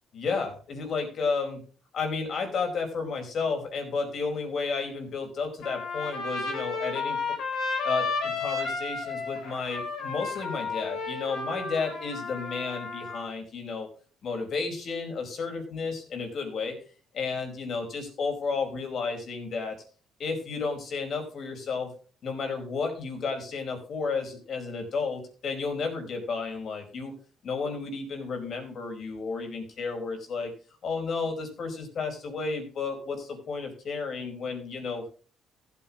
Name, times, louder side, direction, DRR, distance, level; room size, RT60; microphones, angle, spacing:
voice 1, 0.1-1.6 1.9-7.2 7.8-13.9 14.2-16.8 17.1-19.8 20.2-21.9 22.2-27.1 27.4-30.5 30.8-35.1, left 4 dB, 55° left, 4 dB, 4.5 m, -32 dB
Trumpet, 5.6-13.3, left 4 dB, 80° left, 4.3 m, -32 dB
15.0 x 8.5 x 3.6 m, 0.38 s
cardioid pair, 95°, 0 cm